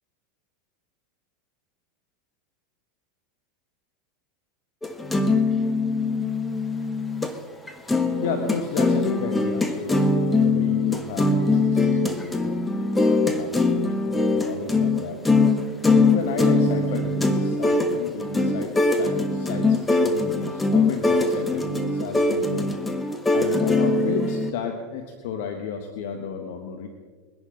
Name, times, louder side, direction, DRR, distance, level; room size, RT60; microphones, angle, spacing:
sound 1, 4.8-7.3 7.7-24.5, left 3 dB, 10° left, 1.3 m, -22 dB
voice 1, 8.2-12.5 12.8-15.2 15.9-22.7 23.3-26.9, left 6 dB, 70° left, 4 dB, 1.3 m, -33 dB
21.5 x 11.0 x 3.9 m, 1.5 s
hypercardioid pair, 100°, 0 cm